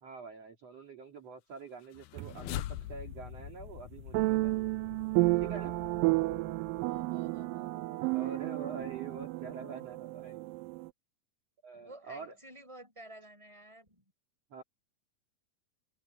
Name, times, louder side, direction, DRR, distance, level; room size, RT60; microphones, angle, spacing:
voice 1, 0.0-4.7 5.3-5.7 8.1-10.5 11.6-12.4 14.5-14.6, right 5 dB, 50° right, 3.5 m, -46 dB
sound 1, 1.8-7.2, left 15 dB, 80° left, 1.8 m, -44 dB
sound 2, 2.2-2.6 4.1-10.9, right 23 dB, 85° right, 2.2 m, -32 dB
voice 2, 6.6-8.8 9.6-9.8 11.7-14.0, right 1 dB, 10° right, 6.8 m, -53 dB
omnidirectional pair, 4.0 m